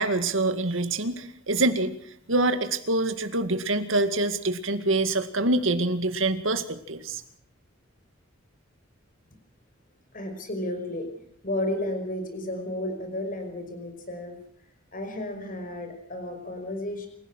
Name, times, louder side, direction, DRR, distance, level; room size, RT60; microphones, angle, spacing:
voice 1, 0.0-1.9 2.3-7.2, right 2 dB, 70° right, 9 dB, 2.1 m, -25 dB
voice 2, 10.1-11.1 11.4-14.4 14.9-17.1, left 1 dB, 45° left, 5 dB, 5.5 m, -32 dB
28.0 x 16.5 x 6.4 m, 0.63 s
head